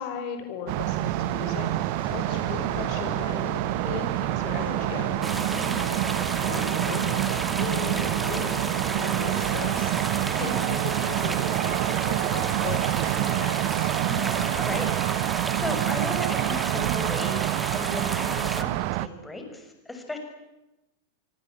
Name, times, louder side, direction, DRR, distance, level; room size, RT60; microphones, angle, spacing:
voice 1, 0.0-3.6 3.8-5.1 6.5-9.9 10.2-13.9, left 6 dB, 45° left, 7 dB, 5.8 m, -38 dB
sound 1, 0.7-19.1, right 17 dB, 45° right, 1.0 m, -27 dB
sound 2, 1.0-14.9, left 3 dB, 65° left, 4.1 m, -41 dB
sound 3, 5.2-18.6, right 2 dB, 10° right, 2.5 m, -33 dB
voice 2, 14.0-20.2, left 1 dB, 10° left, 5 dB, 6.3 m, -36 dB
26.0 x 24.5 x 8.7 m, 0.98 s
figure-of-eight pair, 90°, 0 cm